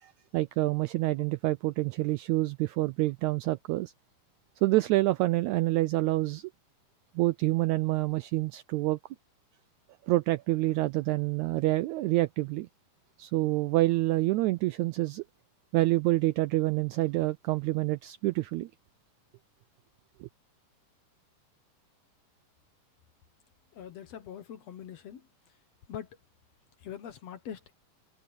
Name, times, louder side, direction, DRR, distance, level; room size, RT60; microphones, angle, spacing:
voice 1, 0.0-3.9 4.6-6.5 7.1-9.0 10.1-12.7 13.2-15.2 15.7-18.7 20.2-20.3, right 19 dB, 80° right, 1.7 m, -27 dB
voice 2, 23.7-25.2 25.9-26.1 26.8-27.7, left 9 dB, 60° left, 2.1 m, -42 dB
omnidirectional pair, 3.8 m